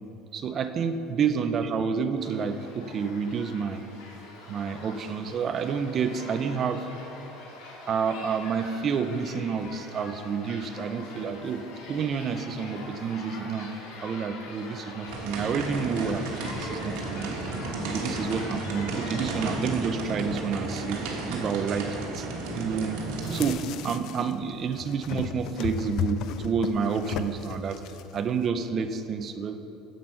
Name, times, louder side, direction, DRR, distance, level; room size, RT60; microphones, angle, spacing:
voice 1, 0.3-3.8 4.5-6.9 7.9-13.7 14.0-17.3 17.9-21.0 21.3-22.3 22.6-23.0 23.3-27.8 28.1-29.6, right 6 dB, 30° right, 8 dB, 0.4 m, -29 dB
sound 1, 2.2-19.6, left 2 dB, 80° left, 1.7 m, -44 dB
sound 2, 15.1-23.5, right 2 dB, 75° right, 1.5 m, -33 dB
sound 3, 23.2-24.3 24.6-28.2, left 7 dB, 50° left, 0.3 m, -35 dB
7.9 x 7.8 x 5.7 m, 2.9 s
cardioid pair, 175°, 0 cm